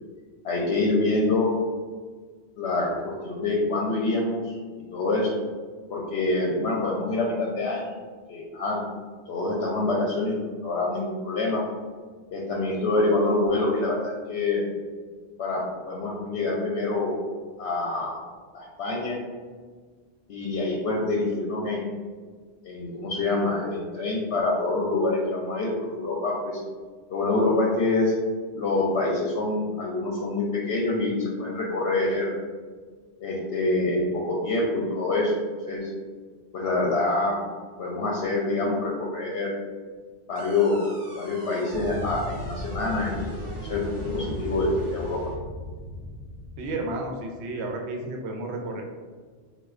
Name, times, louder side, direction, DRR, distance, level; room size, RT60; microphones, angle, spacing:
voice 1, 0.4-1.5 2.6-4.6 4.9-5.3 5.9-8.0 8.3-8.8 9.3-11.6 12.3-14.7 15.4-17.2 17.6-18.2 18.5-19.2 20.3-21.9 22.6-26.6 27.1-28.1 28.5-32.4 33.2-35.3 35.7-35.9 36.5-37.4 37.8-39.5 40.3-40.8 41.1-43.3 43.6-45.2, left 2 dB, 75° left, -3 dB, 0.8 m, -26 dB
sound 1, 40.4-45.4, right 2 dB, 45° right, 0.4 m, -42 dB
sound 2, 41.7-47.5, equal, 35° left, 0.9 m, -37 dB
voice 2, 46.6-48.8, right 2 dB, 75° right, 1 dB, 0.8 m, -32 dB
4.1 x 2.3 x 2.4 m, 1.5 s
omnidirectional pair, 1.2 m